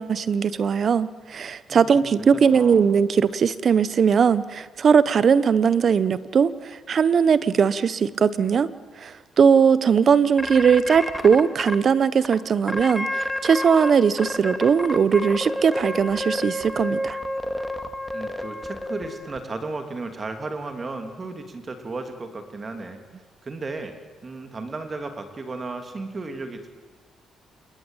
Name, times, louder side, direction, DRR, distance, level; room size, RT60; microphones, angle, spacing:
voice 1, 0.0-8.7 9.0-17.2, right 6 dB, 50° right, 16 dB, 1.0 m, -19 dB
voice 2, 1.7-2.8 18.1-23.0 23.4-23.9 24.2-26.7, right 3 dB, 35° right, 6 dB, 2.7 m, -34 dB
sound 1, 10.4-11.8 12.2-12.3 12.7-13.9 14.2-19.4, left 1 dB, 5° left, 2.4 m, -29 dB
28.0 x 21.5 x 9.1 m, 1.5 s
cardioid pair, 90°, 0 cm